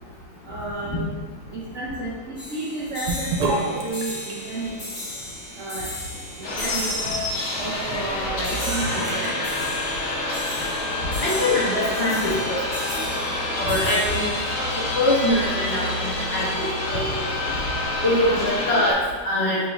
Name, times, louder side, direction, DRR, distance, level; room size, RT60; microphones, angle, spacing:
voice 1, 0.4-1.1 1.5-5.0 5.6-5.9 6.4-7.2 7.6-9.5, right 1 dB, 65° right, -7 dB, 0.7 m, -31 dB
sound 1, 2.4-15.8, left 1 dB, 60° left, 2.2 m, -36 dB
Sink (filling or washing) / Bathtub (filling or washing), 3.1-10.4, right 3 dB, 85° right, 1.5 m, -34 dB
sound 2, 6.4-18.9, left 1 dB, 85° left, 0.6 m, -27 dB
voice 2, 11.2-12.6 12.9-13.0 13.5-14.3 14.9-17.2 18.0-19.0 19.2-19.6, left 1 dB, 35° left, -7 dB, 1.1 m, -23 dB
6.6 x 2.4 x 3.0 m, 1.4 s
omnidirectional pair, 2.3 m